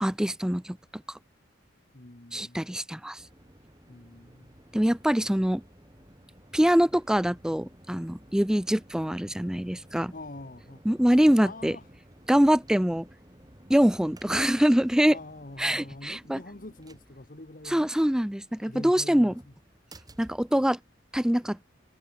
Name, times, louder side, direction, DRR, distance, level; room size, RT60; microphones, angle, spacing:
voice 1, 0.0-0.8 2.3-3.2 4.7-5.6 6.5-10.1 10.9-11.8 12.3-13.1 13.7-15.2 15.6-16.4 17.7-19.3 20.2-20.8 21.1-21.6, equal, 5° right, 0.4 m, -24 dB
voice 2, 1.9-2.7 3.9-4.6 5.3-5.5 10.1-11.1 11.4-11.9 15.1-17.9 18.6-19.5, left 2 dB, 45° left, 1.7 m, -45 dB
sound 1, 3.2-21.2, right 1 dB, 20° right, 5.7 m, -55 dB
head